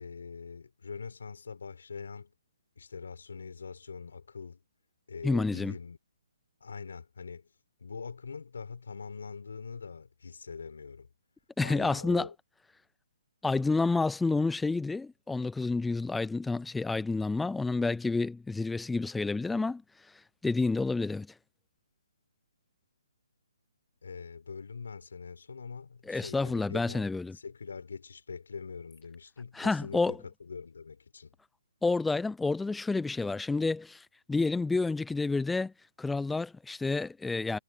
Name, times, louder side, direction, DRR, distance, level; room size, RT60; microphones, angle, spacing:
voice 1, 0.0-2.3 2.8-4.6 5.1-6.0 6.6-7.5 7.8-11.1 11.6-12.3 24.0-27.1 27.3-31.3, left 5 dB, 75° left, 4.5 m, -43 dB
voice 2, 5.2-5.7 11.6-12.3 13.4-19.8 20.4-21.3 26.1-27.4 29.6-30.2 31.8-34.0 34.3-35.7 36.0-37.6, left 3 dB, 5° left, 0.3 m, -29 dB
hypercardioid pair, 155°, 0 cm